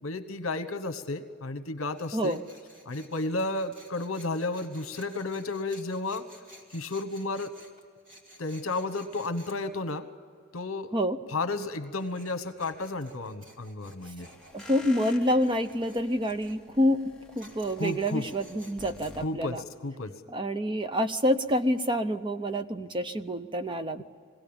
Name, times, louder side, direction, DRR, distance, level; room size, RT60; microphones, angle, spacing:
voice 1, 0.0-2.4 2.8-6.2 6.7-7.5 8.4-10.0 10.5-10.9 11.3-14.3 17.8-18.3 19.2-19.6 19.8-20.1, left 2 dB, 65° left, 10 dB, 1.2 m, -32 dB
Tools, 1.9-9.6 11.8-16.6 17.4-19.1, equal, 40° right, 2.8 m, -54 dB
sound 1, 14.2-19.3, left 1 dB, 5° left, 1.1 m, -50 dB
voice 2, 14.5-19.6 20.3-24.0, equal, 20° right, 10 dB, 0.7 m, -27 dB
22.0 x 17.0 x 8.9 m, 2.2 s
head